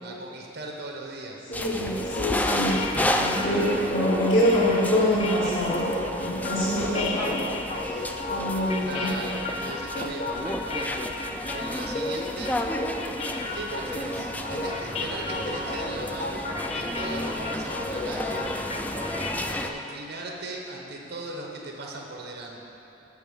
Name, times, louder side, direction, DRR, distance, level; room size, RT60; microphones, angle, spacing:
voice 1, 0.0-1.5 8.8-11.0 11.5-12.5 13.5-18.5 19.6-22.6, right 2 dB, 60° right, 0 dB, 1.0 m, -38 dB
voice 2, 1.5-2.7 3.1-5.9 6.2-7.4 7.7-9.1, left 1 dB, 90° left, -13 dB, 2.1 m, -25 dB
sound 1, 1.5-19.7, left 1 dB, 10° left, 0.3 m, -32 dB
sound 2, 1.9-19.8, left 1 dB, 35° left, 0.7 m, -33 dB
8.6 x 5.5 x 6.9 m, 3.0 s
head